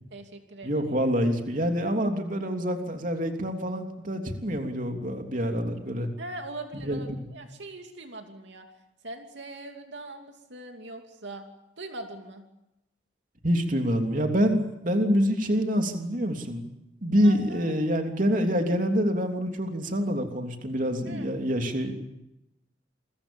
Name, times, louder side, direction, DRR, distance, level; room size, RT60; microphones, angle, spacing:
voice 1, 0.1-0.9 6.2-8.7 9.0-11.4 11.8-12.4 17.1-17.7 21.0-21.4, right 2 dB, 70° right, 4 dB, 2.8 m, -41 dB
voice 2, 0.6-6.1 6.7-7.3 13.4-16.6 17.0-21.9, equal, 45° right, 4 dB, 3.2 m, -26 dB
29.0 x 23.0 x 7.2 m, 0.88 s
head